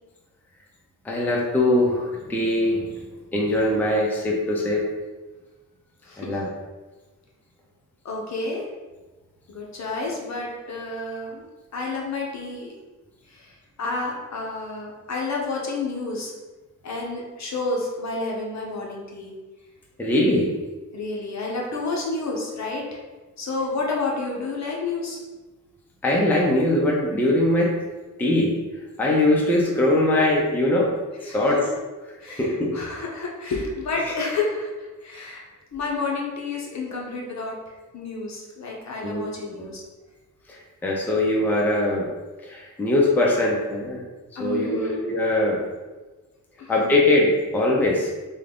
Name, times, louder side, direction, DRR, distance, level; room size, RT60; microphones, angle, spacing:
voice 1, 1.0-2.9 3.3-4.8 6.2-6.5 20.0-20.5 26.0-27.7 28.2-28.5 29.0-30.9 31.2-31.6 32.2-32.7 39.0-39.3 40.5-42.1 42.4-44.0 44.4-45.6 46.7-48.1, left 1 dB, 5° left, -3 dB, 0.4 m, -21 dB
voice 2, 6.0-6.4 8.0-8.7 9.5-11.4 11.7-12.7 13.3-16.3 16.8-19.3 20.9-23.0 23.4-25.2 31.2-31.6 32.2-35.4 35.7-37.6 37.9-39.8 44.4-45.0 46.6-46.7, left 3 dB, 60° left, -2 dB, 0.7 m, -30 dB
3.7 x 2.2 x 3.4 m, 1.2 s
wide cardioid pair, 175°, 32 cm